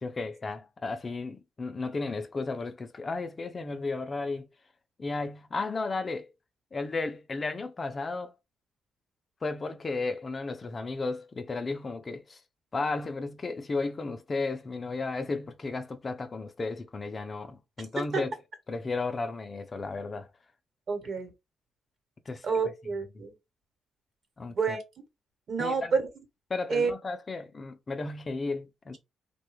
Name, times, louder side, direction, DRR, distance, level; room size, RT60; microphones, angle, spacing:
voice 1, 0.0-4.5 5.0-6.3 6.7-8.3 9.4-12.4 12.7-18.3 18.7-20.3 22.3-22.5 24.4-24.6 25.6-25.9 26.5-29.0, left 3 dB, 30° left, 0.4 m, -34 dB
voice 2, 20.9-21.3 22.4-23.3 24.5-24.8 25.5-26.1 26.7-26.9, right 5 dB, 50° right, 1.0 m, -28 dB
3.2 x 2.2 x 3.1 m
cardioid pair, 140°, 0 cm